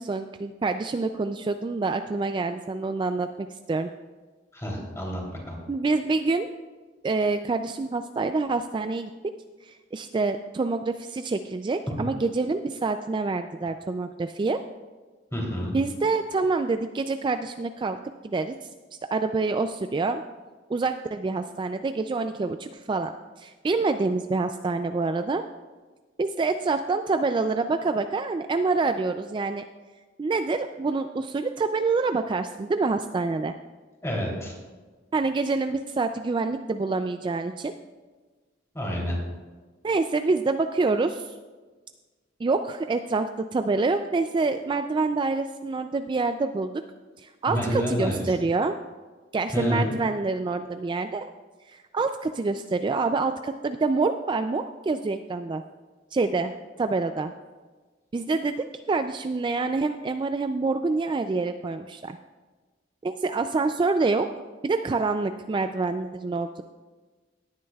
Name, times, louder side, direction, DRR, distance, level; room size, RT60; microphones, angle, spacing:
voice 1, 0.0-3.9 5.7-6.5 7.0-9.1 9.6-14.6 15.7-18.0 18.2-18.7 19.1-20.2 20.7-23.1 23.4-25.4 26.2-29.6 30.2-33.5 35.1-37.7 39.8-41.3 42.4-46.8 47.2-48.7 49.3-51.3 51.7-55.6 56.1-56.5 56.8-57.3 58.1-62.2 63.0-64.3 64.6-66.6, right 3 dB, 25° right, 8 dB, 0.3 m, -26 dB
voice 2, 4.5-5.2 5.5-5.6 15.3-15.8 34.0-34.5 38.7-39.2 47.5-48.2 49.5-49.9, equal, 15° left, -2 dB, 3.0 m, -28 dB
18.0 x 9.6 x 2.3 m, 1.3 s
head